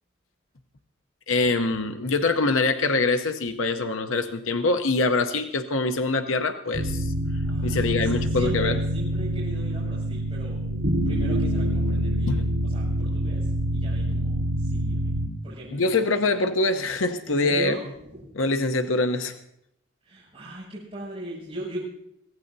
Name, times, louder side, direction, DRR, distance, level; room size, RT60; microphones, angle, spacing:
voice 1, 1.3-7.1 7.6-8.8 12.3-12.4 15.7-17.8 18.4-19.4, left 3 dB, 85° left, 7 dB, 0.9 m, -24 dB
sound 1, 6.7-15.3, equal, 75° right, 3.5 m, -26 dB
voice 2, 7.4-10.6 11.0-15.1 15.4-16.2 17.3-18.4 20.0-21.8, right 1 dB, 30° right, -9 dB, 6.6 m, -38 dB
23.5 x 16.5 x 2.7 m, 0.77 s
head